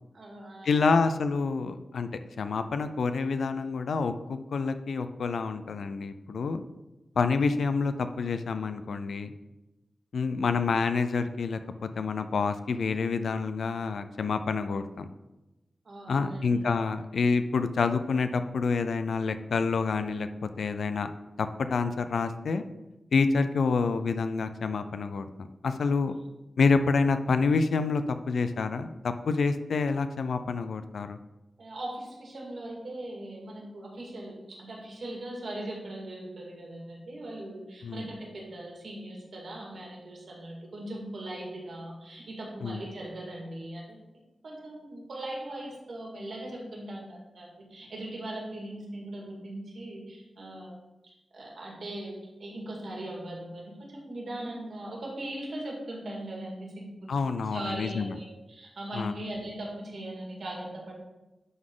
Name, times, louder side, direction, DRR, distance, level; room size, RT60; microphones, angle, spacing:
voice 1, 0.1-1.0 15.8-16.7 31.6-44.0 44.4-50.7 51.3-52.1 52.4-53.6 53.9-57.1 57.5-60.9, right 1 dB, 65° right, -2 dB, 2.1 m, -39 dB
voice 2, 0.6-2.1 2.4-6.6 7.2-9.3 10.1-15.1 16.1-20.3 20.6-21.1 21.4-22.6 23.1-26.1 26.6-31.2 37.8-38.0 42.6-42.8 57.1-58.1 58.9-59.1, left 4 dB, 85° left, 10 dB, 0.5 m, -28 dB
11.0 x 4.0 x 3.8 m, 1.0 s
wide cardioid pair, 100°, 0 cm